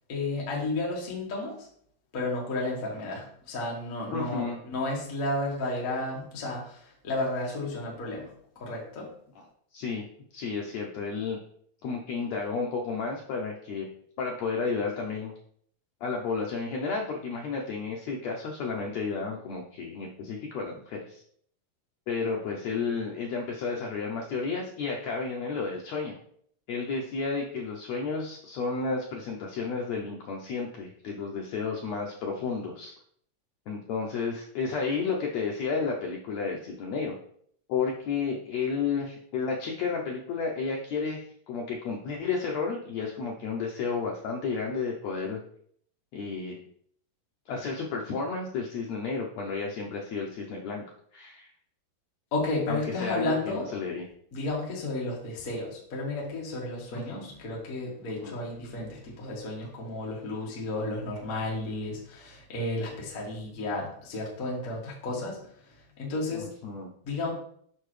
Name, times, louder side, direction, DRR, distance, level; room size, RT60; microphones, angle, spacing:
voice 1, 0.1-1.7 2.1-9.1 52.3-53.7 54.3-65.4 65.6-66.5 67.0-67.3, left 2 dB, 45° left, -3 dB, 1.1 m, -32 dB
voice 2, 4.1-4.6 9.4-9.5 9.7-10.0 10.3-11.4 11.8-13.9 14.2-15.3 16.0-21.2 22.1-26.2 26.7-32.9 33.7-37.1 37.7-45.4 46.1-46.6 47.5-50.8 51.1-51.5 52.7-54.1 56.9-57.2 58.2-58.4 66.3-66.9, left 4 dB, 90° left, 0 dB, 1.5 m, -32 dB
6.6 x 5.7 x 3.2 m, 0.64 s
omnidirectional pair, 4.1 m